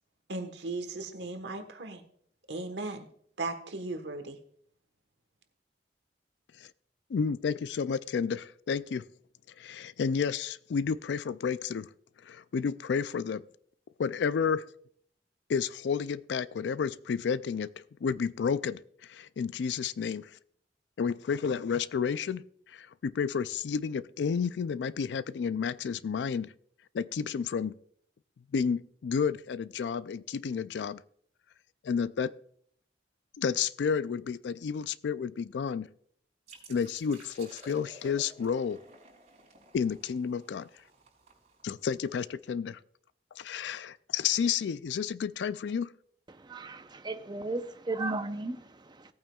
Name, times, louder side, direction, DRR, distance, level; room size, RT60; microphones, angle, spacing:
voice 1, 0.3-2.0 2.5-3.1 3.4-4.4, right 2 dB, 80° right, 7 dB, 1.3 m, -37 dB
voice 2, 7.1-9.0 9.6-11.9 12.2-13.4 14.0-14.6 15.5-17.7 18.0-20.4 21.0-26.5 26.9-27.7 28.5-31.0 31.8-32.3 33.4-35.9 36.7-38.8 39.7-40.7 41.6-42.8 43.4-45.9, left 6 dB, 80° left, 17 dB, 0.4 m, -31 dB
sound 1, 36.5-42.0, right 1 dB, 45° right, 4.8 m, -54 dB
voice 3, 46.3-49.1, right 2 dB, 25° right, 8 dB, 0.6 m, -35 dB
18.0 x 8.8 x 2.3 m, 0.63 s
head